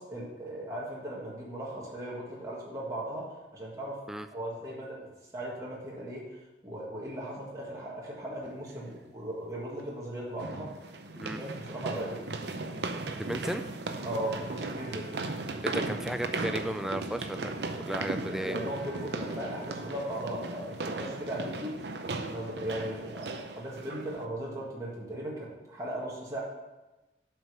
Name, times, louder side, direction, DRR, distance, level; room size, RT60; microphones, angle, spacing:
voice 1, 0.0-3.3 3.5-4.0 4.3-5.1 5.3-6.4 6.6-10.7 11.3-12.2 14.0-15.1 18.3-21.8 22.3-26.4, right 1 dB, 20° right, -5 dB, 1.6 m, -37 dB
sound 1, 8.4-8.5 10.4-24.2, right 3 dB, 75° right, 0.7 m, -37 dB
voice 2, 13.2-13.7 15.6-18.6, equal, 5° right, 9 dB, 0.3 m, -34 dB
Trumpet, 14.1-21.4, right 1 dB, 35° right, 1.9 m, -53 dB
7.8 x 5.1 x 6.7 m, 1.1 s
head